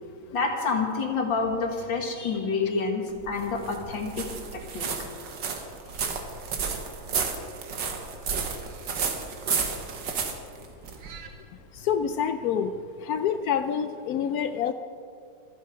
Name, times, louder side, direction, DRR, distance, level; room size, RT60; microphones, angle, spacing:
voice 1, 0.3-4.3 4.5-4.9, left 4 dB, 65° left, 2 dB, 2.4 m, -28 dB
sound 1, 3.1-11.3, right 6 dB, 60° right, 1.9 m, -32 dB
voice 2, 11.7-12.7 13.0-14.7, left 8 dB, 90° left, 10 dB, 0.8 m, -27 dB
24.5 x 9.4 x 5.0 m, 2.4 s
omnidirectional pair, 2.2 m